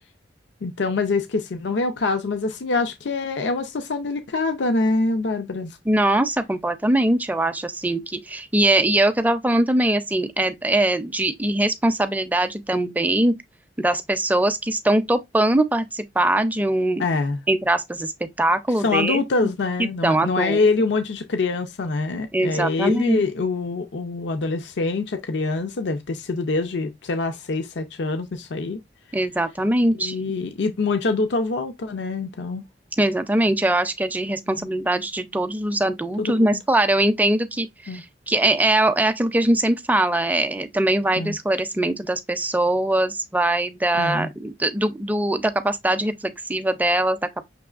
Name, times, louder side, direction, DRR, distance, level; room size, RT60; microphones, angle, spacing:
voice 1, 0.6-5.8 17.0-17.4 18.8-28.8 29.9-32.6 34.5-34.7 36.2-36.6 37.9-38.0 41.2-41.4 43.9-44.3, left 3 dB, 75° left, 0.5 m, -25 dB
voice 2, 5.9-13.3 13.8-17.0 17.5-18.1 18.4-19.2 19.8-20.6 22.3-23.2 29.1-30.3 33.0-47.2, right 1 dB, 10° right, 0.4 m, -22 dB
6.0 x 3.0 x 2.4 m
head